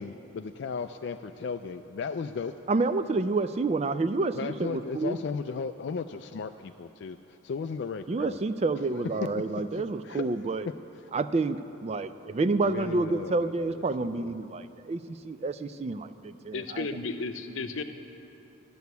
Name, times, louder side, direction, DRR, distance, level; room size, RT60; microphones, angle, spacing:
voice 1, 0.0-2.5 4.3-8.4 8.9-10.5 12.6-14.3, left 5 dB, 55° left, 8 dB, 0.3 m, -36 dB
voice 2, 2.7-5.2 8.1-10.7 11.1-16.9, right 3 dB, 30° right, 12 dB, 0.3 m, -29 dB
voice 3, 16.5-17.8, left 3 dB, 75° left, 7 dB, 0.7 m, -33 dB
12.5 x 6.9 x 9.4 m, 2.9 s
head